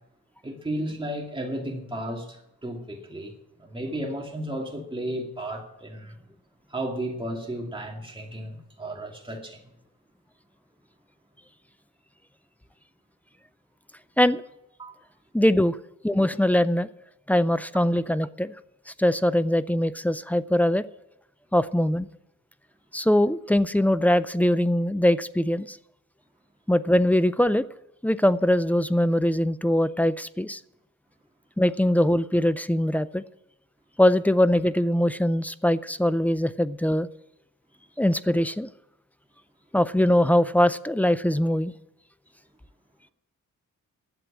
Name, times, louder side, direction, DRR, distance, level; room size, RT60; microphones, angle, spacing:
voice 1, 0.4-6.3 6.7-9.6 14.8-15.0, right 1 dB, 15° right, 2.2 m, -34 dB
voice 2, 15.3-15.8 16.0-16.9 17.3-18.5 19.0-20.8 21.5-22.1 22.9-25.8 26.7-27.6 28.0-30.6 31.6-33.2 34.0-37.1 38.0-38.7 39.7-41.7, left 1 dB, 5° left, 0.4 m, -22 dB
11.0 x 7.5 x 8.5 m
wide cardioid pair, 125°, 31 cm